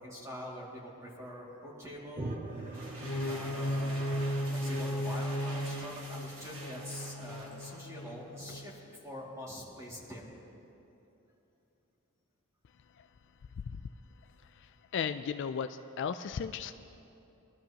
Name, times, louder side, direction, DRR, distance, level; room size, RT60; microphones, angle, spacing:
voice 1, 0.0-4.2 4.5-10.2, equal, 15° right, -4 dB, 2.2 m, -45 dB
sound 1, 2.2-6.8, right 2 dB, 30° right, 0.6 m, -44 dB
sound 2, 2.5-8.3, right 1 dB, 65° right, 1.6 m, -48 dB
sound 3, 2.9-8.8, equal, 85° left, 0.7 m, -36 dB
voice 2, 14.9-16.8, left 7 dB, 55° left, 9 dB, 0.3 m, -35 dB
22.0 x 13.0 x 2.9 m, 2.8 s
head